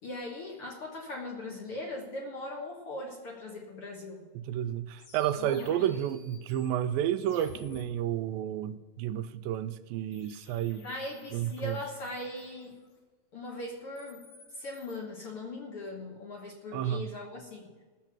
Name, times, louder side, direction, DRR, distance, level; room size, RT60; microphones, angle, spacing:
voice 1, 0.0-4.2 5.4-5.9 10.8-12.8 13.3-14.3 14.5-17.7, left 2 dB, 55° left, -1 dB, 1.7 m, -40 dB
voice 2, 4.3-10.9 11.3-11.8 16.7-17.1, right 11 dB, 85° right, 12 dB, 2.3 m, -31 dB
sound 1, 5.0-7.8 10.1-12.9 13.8-15.0, left 4 dB, 80° left, 3.9 m, -53 dB
18.0 x 7.1 x 6.0 m, 1.3 s
omnidirectional pair, 4.1 m